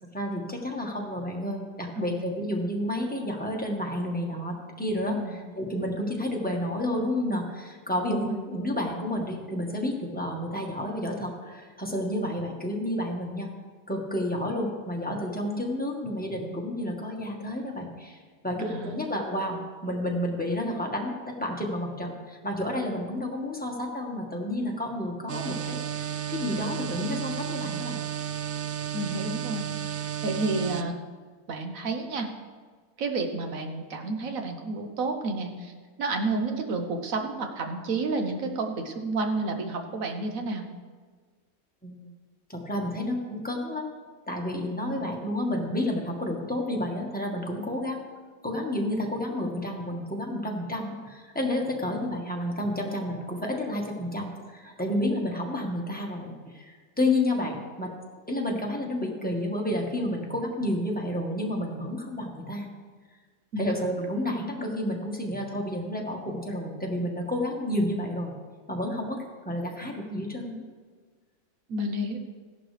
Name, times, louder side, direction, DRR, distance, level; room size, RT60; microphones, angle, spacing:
voice 1, 0.0-13.5 13.9-18.2 18.4-28.0 41.8-42.1 42.5-43.9 44.3-48.0 48.4-57.9 58.3-62.7 63.6-68.3 68.7-70.6, left 1 dB, 5° left, -1 dB, 1.4 m, -30 dB
voice 2, 5.1-5.4 8.1-8.4 18.6-19.0 28.9-30.9 31.5-32.3 33.0-35.7 36.0-40.6 44.9-45.1 63.5-63.7 71.7-72.2, right 2 dB, 60° right, 5 dB, 1.4 m, -30 dB
sound 1, 25.3-30.8, right 9 dB, 90° right, 0.5 m, -33 dB
15.0 x 11.0 x 3.4 m, 1.5 s
omnidirectional pair, 1.6 m